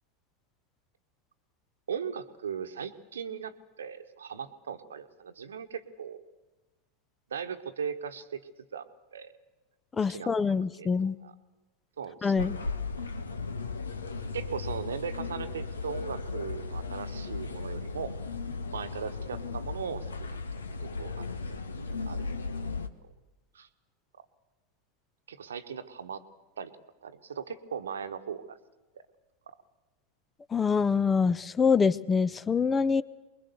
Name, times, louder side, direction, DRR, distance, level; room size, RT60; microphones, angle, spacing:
voice 1, 1.9-6.2 7.3-9.3 10.1-11.3 12.0-12.4 13.0-13.1 14.3-18.2 18.7-21.6 22.0-22.5 23.5-23.7 25.3-26.2 26.6-26.7 27.0-28.6 29.5-29.6, right 7 dB, 70° right, 9 dB, 1.2 m, -39 dB
voice 2, 10.0-11.1 12.2-12.6 30.5-33.0, left 5 dB, 20° left, 19 dB, 0.7 m, -25 dB
sound 1, 12.4-22.9, left 4 dB, 75° left, 1.2 m, -36 dB
24.5 x 21.5 x 6.9 m, 1.1 s
figure-of-eight pair, 85°, 0 cm